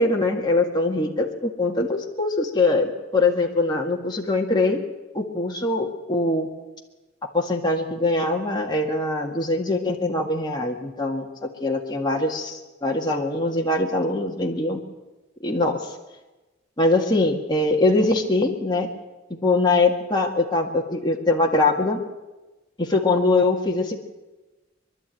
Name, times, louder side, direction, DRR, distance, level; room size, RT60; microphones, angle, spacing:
voice 1, 0.0-4.8 5.1-6.5 7.3-14.8 15.4-15.9 16.8-18.9 19.4-22.0 22.8-24.0, left 2 dB, 25° left, -1 dB, 1.9 m, -22 dB
24.0 x 12.0 x 9.2 m, 1.1 s
head